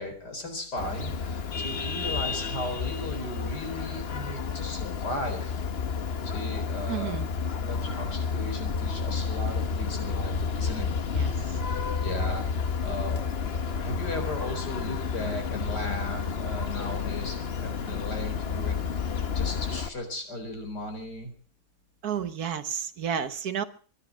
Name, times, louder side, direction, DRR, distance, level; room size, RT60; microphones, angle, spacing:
voice 1, 0.0-5.6 6.3-7.1 7.6-10.9 11.2-11.3 11.6-21.3, left 1 dB, 80° left, 5 dB, 4.8 m, -37 dB
Vehicle horn car horn honking, 0.8-19.9, left 5 dB, 40° left, 1.2 m, -31 dB
voice 2, 6.9-7.3 11.1-11.3 22.0-23.6, right 8 dB, 70° right, 11 dB, 1.6 m, -31 dB
23.5 x 10.5 x 6.0 m, 0.41 s
omnidirectional pair, 1.7 m